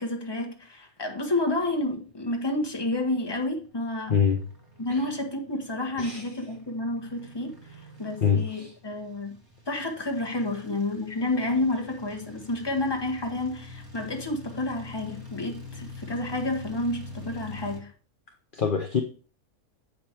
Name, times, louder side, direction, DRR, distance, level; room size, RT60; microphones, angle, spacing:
voice 1, 0.0-4.2 4.8-9.4 9.7-17.9, left 2 dB, 20° left, 1.2 m, -30 dB
sound 1, 1.3-17.8, left 2 dB, 15° right, 1.6 m, -46 dB
voice 2, 4.1-4.4 4.9-5.0 6.0-6.2 8.2-8.7 18.5-19.0, left 6 dB, 45° left, 0.8 m, -24 dB
7.9 x 5.2 x 4.4 m
omnidirectional pair, 1.5 m